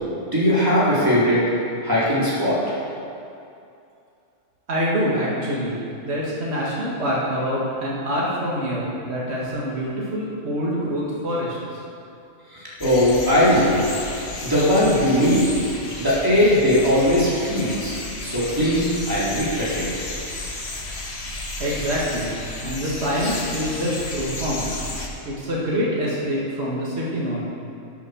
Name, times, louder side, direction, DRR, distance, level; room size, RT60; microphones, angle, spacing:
voice 1, 0.3-1.4 1.8-2.6 12.5-14.0 14.4-15.5 16.0-17.9 18.2-19.9, equal, 15° right, -8 dB, 3.8 m, -19 dB
voice 2, 4.7-5.8 6.0-11.6 21.6-22.3 22.6-24.7 25.3-27.4, equal, 55° right, -6 dB, 2.3 m, -25 dB
sound 1, 12.8-25.1, left 2 dB, 55° left, 1.7 m, -33 dB
12.5 x 8.8 x 6.4 m, 2.6 s
omnidirectional pair, 1.3 m